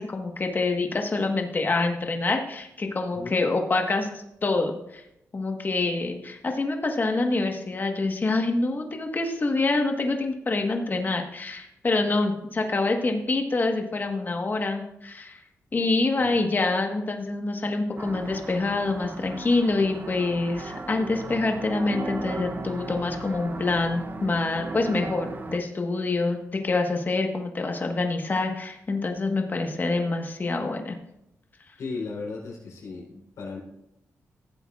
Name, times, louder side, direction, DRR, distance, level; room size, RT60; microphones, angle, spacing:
voice 1, 0.0-5.0 5.3-15.4 15.7-31.0, left 3 dB, 35° left, 4 dB, 1.3 m, -26 dB
sound 1, 18.0-25.6, right 3 dB, 40° right, 0.7 m, -37 dB
voice 2, 31.8-33.6, left 4 dB, 85° left, -3 dB, 3.5 m, -36 dB
15.0 x 8.0 x 2.4 m, 0.80 s
cardioid pair, 85°, 5 cm